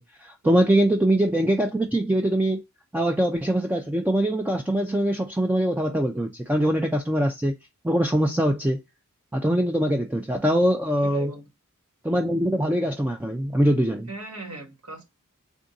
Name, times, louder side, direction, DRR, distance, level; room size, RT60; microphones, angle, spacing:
voice 1, 0.2-2.6 2.9-7.6 7.8-8.8 9.3-11.3 12.0-14.1, right 1 dB, 10° right, 0.3 m, -23 dB
voice 2, 11.0-11.4 14.1-15.0, right 3 dB, 85° right, 1.2 m, -37 dB
3.5 x 2.5 x 3.8 m
head